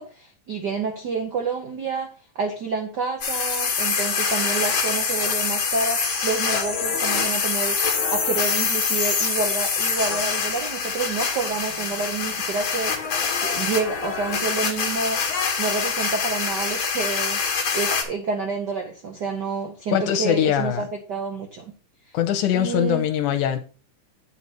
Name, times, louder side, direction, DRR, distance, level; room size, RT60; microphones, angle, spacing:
voice 1, 0.0-15.2 15.6-17.4 17.7-21.7 22.5-23.0, right 4 dB, 80° right, 0.9 m, -29 dB
sound 1, 3.2-18.0, left 5 dB, 50° left, 1.9 m, -25 dB
voice 2, 19.9-20.9 22.1-23.6, left 10 dB, 85° left, 2.1 m, -22 dB
8.8 x 4.2 x 5.8 m
omnidirectional pair, 3.5 m